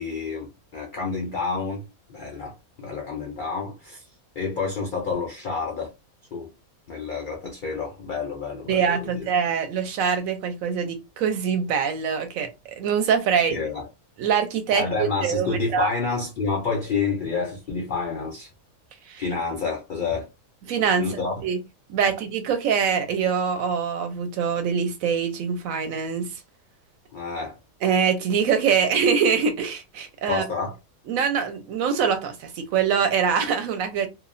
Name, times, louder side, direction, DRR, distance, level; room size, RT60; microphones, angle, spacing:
voice 1, 0.0-1.8 2.1-4.0 4.4-5.9 6.3-6.5 6.9-9.3 13.5-13.9 14.7-18.5 19.2-20.3 21.0-21.4 22.0-22.1 27.1-27.6 30.3-30.8, left 4 dB, 75° left, 0.4 m, -29 dB
voice 2, 8.7-13.6 14.2-15.9 19.1-19.2 20.7-21.1 21.4-21.6 21.9-26.3 27.8-30.4 31.1-34.1, right 6 dB, 75° right, 1.0 m, -24 dB
2.7 x 2.0 x 2.4 m
omnidirectional pair, 1.5 m